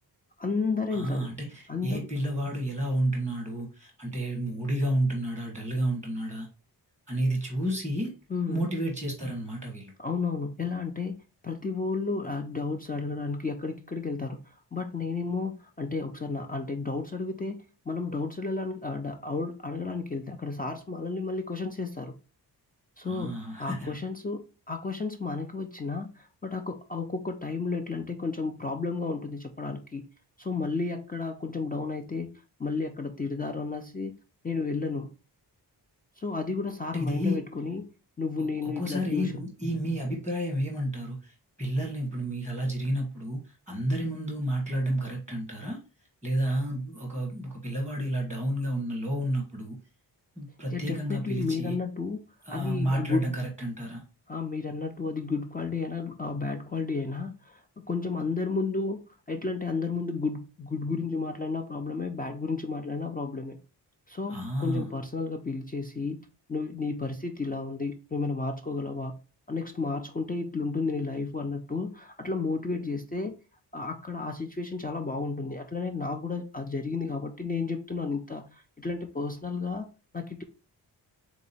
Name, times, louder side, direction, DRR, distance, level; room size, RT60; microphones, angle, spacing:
voice 1, 0.4-1.3 1.7-2.1 8.3-8.7 10.0-11.2 11.4-14.4 14.7-22.1 23.0-30.0 30.4-34.1 34.4-35.1 36.2-37.9 38.2-39.4 50.7-52.2 52.5-53.2 54.3-59.0 59.3-63.6 64.1-66.2 66.5-69.1 69.5-73.3 73.7-79.9 80.1-80.4, left 4 dB, 20° left, 0.4 m, -32 dB
voice 2, 0.9-6.5 7.1-8.1 8.5-9.9 23.0-23.9 36.9-37.4 38.8-45.8 46.2-49.8 50.4-51.7 52.4-54.0 64.3-64.9, right 1 dB, 5° left, 1.2 m, -30 dB
3.6 x 2.9 x 4.1 m
wide cardioid pair, 145°, 42 cm